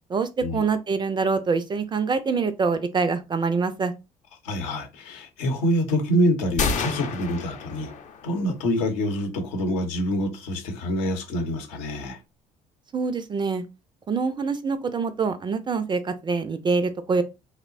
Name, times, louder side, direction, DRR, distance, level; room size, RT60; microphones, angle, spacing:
voice 1, 0.1-3.9 12.9-13.6 14.1-17.2, right 4 dB, 25° right, 0.4 m, -25 dB
voice 2, 4.4-7.9 8.2-12.2, equal, 70° left, 0.8 m, -26 dB
sound 1, 6.6-8.5, left 4 dB, 40° left, 0.6 m, -29 dB
2.9 x 2.0 x 2.5 m
figure-of-eight pair, 55°, 20 cm